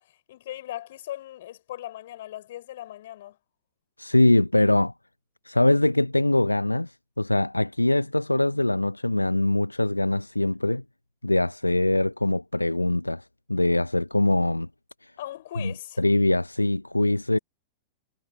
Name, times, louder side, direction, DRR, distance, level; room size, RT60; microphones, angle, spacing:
voice 1, 0.0-3.4 15.2-16.0, left 13 dB, 55° left, 6.9 m, -39 dB
voice 2, 4.0-4.9 5.4-10.8 11.2-14.7 15.0-15.1 15.6-17.4, left 1 dB, 85° left, 0.9 m, -23 dB
figure-of-eight pair, 95°, 0 cm